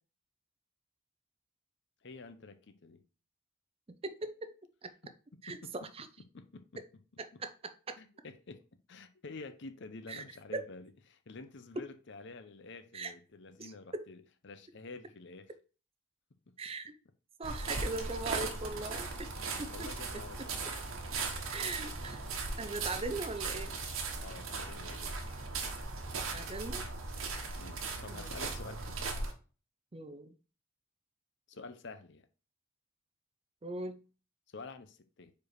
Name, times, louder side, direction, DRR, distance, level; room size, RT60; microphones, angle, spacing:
voice 1, 2.0-3.0 5.5-5.7 6.3-6.8 7.3-7.4 8.0-8.6 8.9-15.5 16.5-16.6 19.4-20.6 24.2-25.1 27.6-29.0 31.5-32.3 34.5-35.3, left 3 dB, 60° left, 0.7 m, -49 dB
voice 2, 3.9-4.5 4.8-4.9 5.4-6.1 7.2-7.5 7.9-8.0 10.1-10.2 10.5-10.6 12.9-13.1 13.6-14.1 16.6-16.9 17.4-19.3 19.6-19.9 21.5-23.7 26.3-26.8 28.1-28.3 29.9-30.3 33.6-34.0, right 3 dB, 30° right, 0.5 m, -40 dB
sound 1, 17.4-29.3, right 3 dB, 75° right, 1.2 m, -38 dB
4.9 x 4.7 x 4.6 m
head